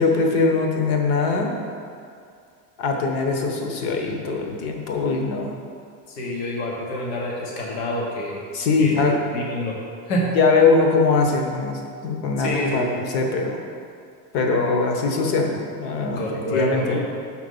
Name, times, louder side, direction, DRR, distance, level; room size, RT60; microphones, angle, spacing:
voice 1, 0.0-1.5 2.8-5.5 8.5-9.2 10.3-13.6 14.3-16.2 16.5-17.0, left 4 dB, 60° left, 2 dB, 1.2 m, -21 dB
voice 2, 6.1-8.4 8.8-9.0 9.3-9.8 10.1-10.3 12.4-12.9 16.2-17.0, left 1 dB, 90° left, -3 dB, 1.4 m, -27 dB
6.4 x 4.8 x 5.5 m, 2.3 s
supercardioid pair, 140°, 45 cm